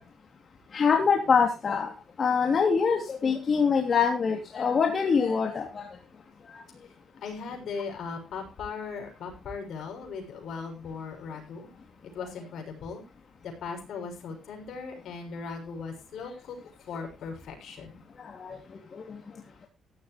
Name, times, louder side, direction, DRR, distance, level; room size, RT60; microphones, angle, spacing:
voice 1, 0.7-1.9 2.2-5.9 18.2-18.6 18.9-19.2, left 5 dB, 45° left, 2 dB, 2.8 m, -24 dB
voice 2, 7.2-11.7 12.0-13.0 13.4-16.6 16.9-18.0, left 5 dB, 70° left, 3 dB, 6.4 m, -38 dB
16.0 x 12.5 x 3.2 m, 0.29 s
cardioid pair, 90°, 0 cm